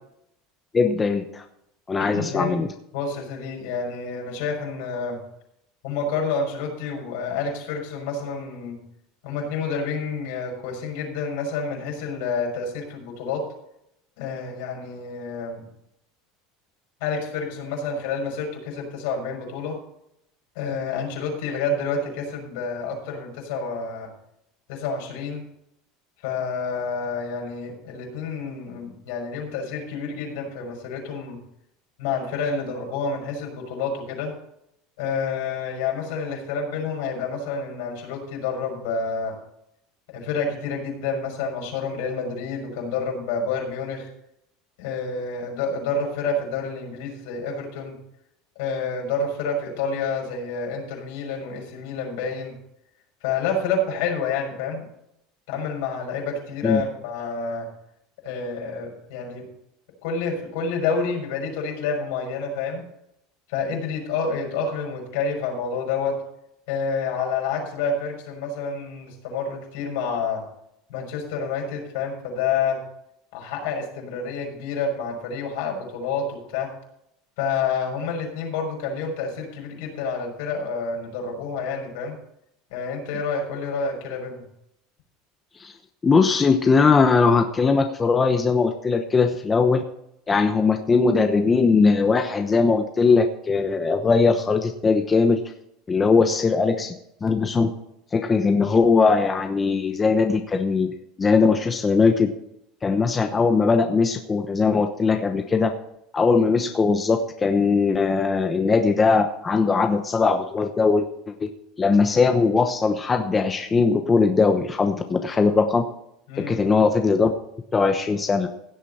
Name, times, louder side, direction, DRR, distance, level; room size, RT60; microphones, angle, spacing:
voice 1, 0.7-1.4 1.9-2.7 56.6-56.8 85.6-85.7 86.0-89.8 90.3-95.4 95.9-96.9 97.2-97.7 98.1-100.9 101.2-102.3 102.8-105.7 106.1-111.5 111.8-115.8 116.4-117.3 117.7-118.5, left 4 dB, 20° left, 5 dB, 0.9 m, -20 dB
voice 2, 2.0-2.5 2.9-5.2 5.8-8.8 9.2-13.4 14.2-15.6 17.0-19.8 20.5-24.1 24.7-25.4 26.2-31.4 32.0-34.3 35.0-39.3 40.1-44.1 44.8-48.0 48.6-52.5 53.2-54.9 55.5-57.7 58.2-59.4 60.0-62.8 63.5-66.2 66.7-70.4 70.9-72.8 73.3-76.7 77.4-82.2 82.7-84.4 116.3-116.6, left 4 dB, 75° left, 1 dB, 6.2 m, -28 dB
16.5 x 8.3 x 4.3 m, 0.77 s
supercardioid pair, 140°, 0 cm